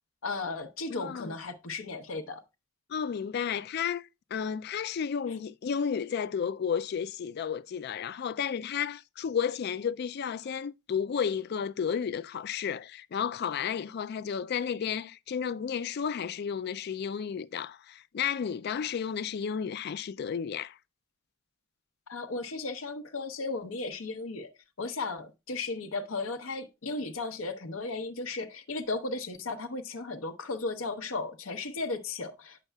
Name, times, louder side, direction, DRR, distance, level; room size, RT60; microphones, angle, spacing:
voice 1, 0.2-2.4 22.1-24.5 24.8-32.6, left 3 dB, 85° left, 0.8 m, -35 dB
voice 2, 0.9-1.3 2.9-20.8, left 7 dB, 55° left, 0.3 m, -32 dB
8.9 x 6.7 x 2.2 m
head